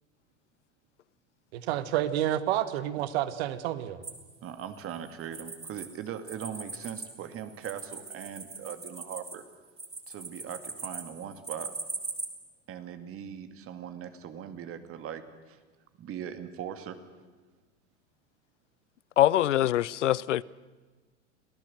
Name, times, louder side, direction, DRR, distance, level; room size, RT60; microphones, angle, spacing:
voice 1, 1.5-4.0, right 12 dB, 60° right, 1.6 m, -29 dB
sound 1, 4.0-5.9 6.2-12.3, right 3 dB, 15° right, 4.8 m, -40 dB
voice 2, 4.4-9.4 10.1-11.7 12.7-15.6 16.0-17.0, right 9 dB, 40° right, 2.3 m, -40 dB
voice 3, 19.2-20.4, left 13 dB, 80° left, 0.7 m, -23 dB
27.0 x 17.5 x 7.9 m
hypercardioid pair, 85°, 35 cm